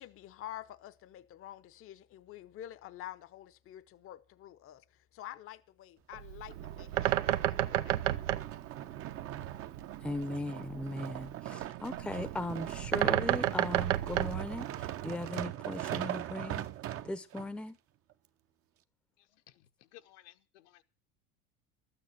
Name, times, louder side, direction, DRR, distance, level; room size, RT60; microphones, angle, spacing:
voice 1, 0.0-8.0, left 13 dB, 40° left, 0.8 m, -48 dB
Bird, 6.1-15.3, right 14 dB, 90° right, 0.9 m, -33 dB
sound 1, 6.5-17.5 18.1-18.2, right 13 dB, 40° right, 0.8 m, -41 dB
voice 2, 10.0-16.7 17.0-17.8, left 2 dB, 5° left, 0.7 m, -38 dB
voice 3, 19.2-20.8, left 15 dB, 80° left, 1.3 m, -58 dB
12.5 x 8.9 x 7.6 m
supercardioid pair, 115°, 35 cm